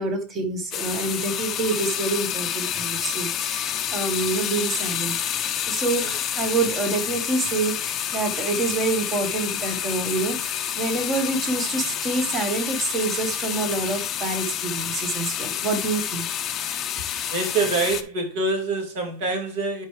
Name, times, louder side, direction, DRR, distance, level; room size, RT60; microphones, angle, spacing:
voice 1, 0.0-5.2 5.7-16.3, right 3 dB, 20° right, 1.3 m, -27 dB
sound 1, 0.7-18.0, left 10 dB, 25° left, 0.6 m, -28 dB
voice 2, 17.3-19.8, right 3 dB, 55° right, 2.6 m, -25 dB
10.5 x 4.6 x 3.2 m
supercardioid pair, 160°, 0 cm